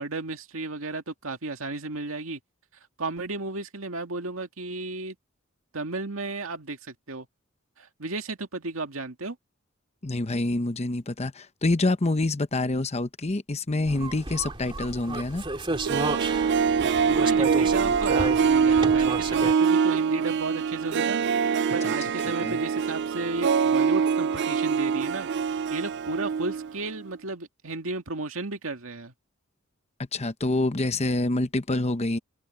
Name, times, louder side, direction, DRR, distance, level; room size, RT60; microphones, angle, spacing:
voice 1, 0.0-2.4 3.0-5.2 5.7-7.3 7.8-9.4 17.1-29.1, right 2 dB, 90° right, 2.0 m, -33 dB
voice 2, 10.0-15.4 21.8-21.9 22.2-22.6 30.1-32.2, left 2 dB, 30° left, 0.9 m, -27 dB
sound 1, 13.9-19.5, right 2 dB, 25° right, 2.7 m, -33 dB
Harp, 15.7-26.7 27.0-27.1, right 6 dB, 55° right, 0.4 m, -24 dB
head